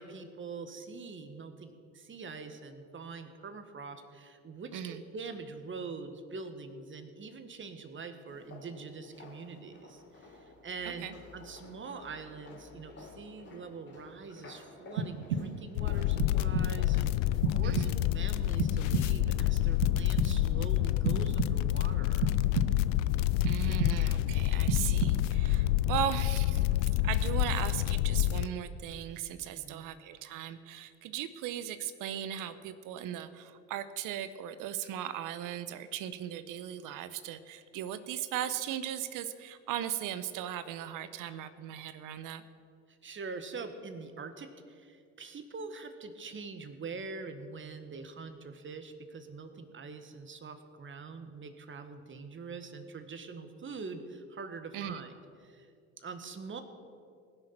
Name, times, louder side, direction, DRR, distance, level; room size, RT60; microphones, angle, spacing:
voice 1, 0.0-22.3 25.6-26.0 29.5-29.9 42.9-55.1 55.4-55.7 56.0-56.6, right 4 dB, 30° right, 8 dB, 1.5 m, -44 dB
sound 1, 8.3-17.8, left 3 dB, 30° left, 3.4 m, -52 dB
sound 2, 15.0-15.8 16.2-16.9 17.4-18.2 18.6-19.4 19.8-20.6 21.0-21.8 22.2-23.0 23.4-24.3 24.7-25.5, right 5 dB, 85° right, 0.9 m, -33 dB
sound 3, 15.8-28.5, left 15 dB, 75° left, 0.5 m, -28 dB
voice 2, 17.6-18.0 23.4-26.7 27.0-42.4 54.7-55.0, right 11 dB, 60° right, 13 dB, 0.9 m, -37 dB
20.0 x 6.7 x 5.9 m, 2.3 s
hypercardioid pair, 70°, 37 cm